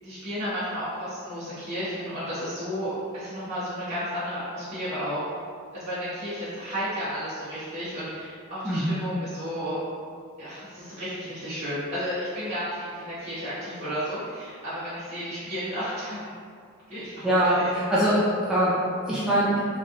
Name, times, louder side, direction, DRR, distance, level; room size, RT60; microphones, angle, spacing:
voice 1, 0.0-5.2 5.7-9.8 10.4-16.3 16.9-17.3 17.6-17.7, equal, 30° right, -15 dB, 1.0 m, -32 dB
voice 2, 8.6-9.0 17.2-17.6 17.9-18.7 19.1-19.6, right 1 dB, 5° right, -10 dB, 0.3 m, -22 dB
3.2 x 2.6 x 2.4 m, 2.2 s
head